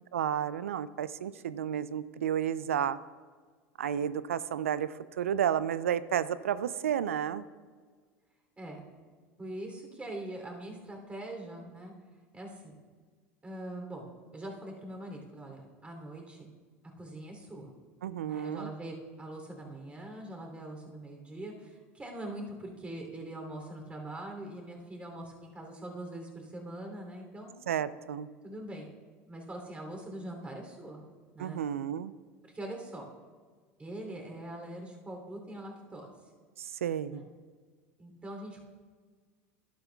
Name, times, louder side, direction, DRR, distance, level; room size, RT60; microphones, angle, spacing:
voice 1, 0.1-3.0 3.8-7.4 18.0-18.7 27.7-28.3 31.4-32.1 36.6-37.2, right 9 dB, 90° right, 16 dB, 0.4 m, -32 dB
voice 2, 9.4-11.9 12.3-12.8 13.4-16.5 17.0-17.7 18.2-27.5 28.4-28.9 29.3-31.1 31.3-31.6 32.4-33.0 33.8-36.1 37.1-37.3 38.0-38.6, right 1 dB, 15° right, 1 dB, 2.9 m, -42 dB
11.5 x 11.5 x 2.3 m, 1.5 s
hypercardioid pair, 90°, 7 cm